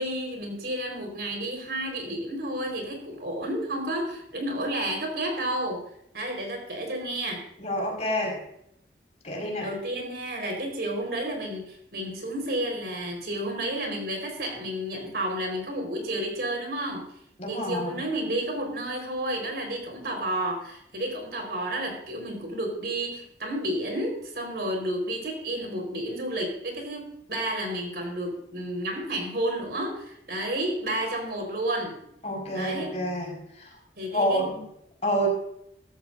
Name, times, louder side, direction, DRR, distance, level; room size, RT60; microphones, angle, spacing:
voice 1, 0.0-5.8 6.1-7.4 9.6-17.0 17.5-32.0 32.5-32.9 34.0-34.4, right 1 dB, 60° right, 2 dB, 4.4 m, -31 dB
voice 2, 7.6-8.4 9.2-9.7 17.4-18.0 32.2-33.7 34.1-34.6 35.0-35.3, equal, 40° left, 0 dB, 4.9 m, -28 dB
16.5 x 14.5 x 2.6 m, 0.74 s
head